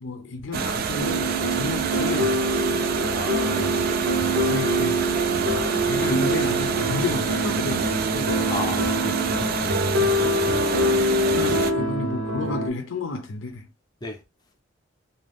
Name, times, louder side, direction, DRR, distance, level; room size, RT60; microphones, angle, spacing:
voice 1, 0.0-2.5 4.5-5.0 5.9-8.3 9.9-10.7 11.3-13.7, left 2 dB, 75° left, 0.6 m, -31 dB
sound 1, 0.5-11.7, right 6 dB, 50° right, 0.3 m, -27 dB
sound 2, 1.0-12.7, equal, 85° right, 0.7 m, -25 dB
voice 2, 3.1-3.7 8.5-9.8 11.2-11.4 14.0-14.2, left 2 dB, 20° left, 0.5 m, -34 dB
2.6 x 2.2 x 3.4 m
head